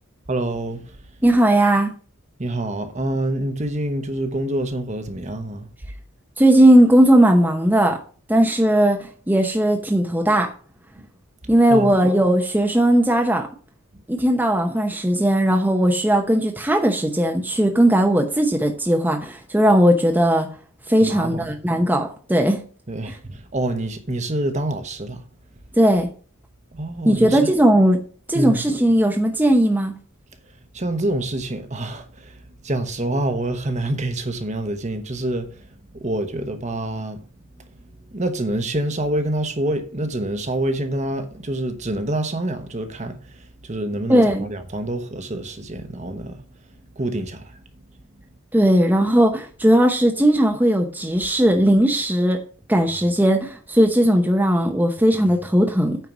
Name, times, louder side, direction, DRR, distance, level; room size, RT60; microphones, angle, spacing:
voice 1, 0.3-0.8 2.4-5.7 11.0-11.1 11.4-11.9 21.0-21.5 22.9-25.2 26.7-27.5 28.3-28.6 30.7-32.3 32.6-35.5 35.9-37.2 38.1-46.4 47.0-47.5, right 1 dB, 35° right, 1.1 m, -26 dB
voice 2, 1.2-1.9 6.4-8.0 8.3-10.5 11.5-13.5 14.1-20.5 20.9-22.6 25.7-26.1 27.0-28.0 28.3-29.9 44.1-44.5 48.5-52.4 52.7-56.0, right 1 dB, 10° right, 0.8 m, -17 dB
9.0 x 4.6 x 6.0 m
head